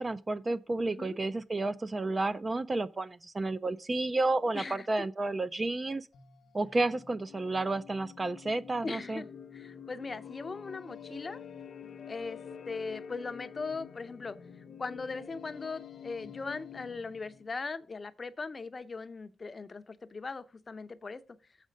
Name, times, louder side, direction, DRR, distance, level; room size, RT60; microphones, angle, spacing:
voice 1, 0.0-6.1 6.5-9.2, right 2 dB, 20° right, 0.4 m, -31 dB
voice 2, 0.9-1.2 4.5-4.9 8.8-9.3 9.5-11.4 12.1-21.2, left 4 dB, 30° left, 0.6 m, -39 dB
sound 1, 6.1-17.5, left 7 dB, 60° left, 0.8 m, -48 dB
7.3 x 5.1 x 6.5 m
cardioid pair, 125°, 0 cm